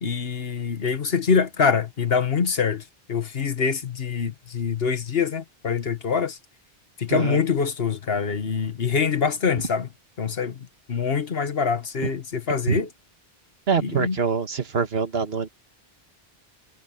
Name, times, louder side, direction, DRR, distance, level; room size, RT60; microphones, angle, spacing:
voice 1, 0.0-2.8 3.1-6.4 7.0-9.9 10.2-12.9 13.8-14.2, left 6 dB, 70° left, 1.5 m, -25 dB
voice 2, 7.1-7.4 12.7-12.8 13.7-15.5, right 5 dB, 70° right, 1.6 m, -24 dB
omnidirectional pair, 1.1 m